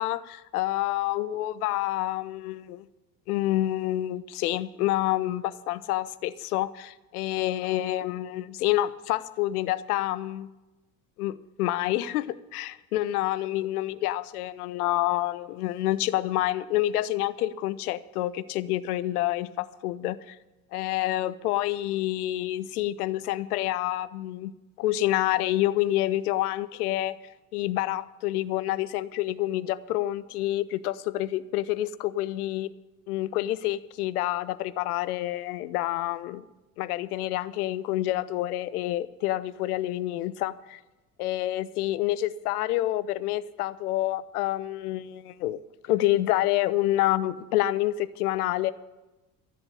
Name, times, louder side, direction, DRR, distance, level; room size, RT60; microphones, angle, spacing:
voice 1, 0.0-2.8 3.3-10.5 11.2-20.4 20.7-27.2 27.5-32.7 33.1-36.4 36.8-40.8 41.2-45.6 45.9-48.7, left 15 dB, 80° left, 16 dB, 0.7 m, -28 dB
13.0 x 7.9 x 8.4 m, 1.1 s
hypercardioid pair, 65°, 45 cm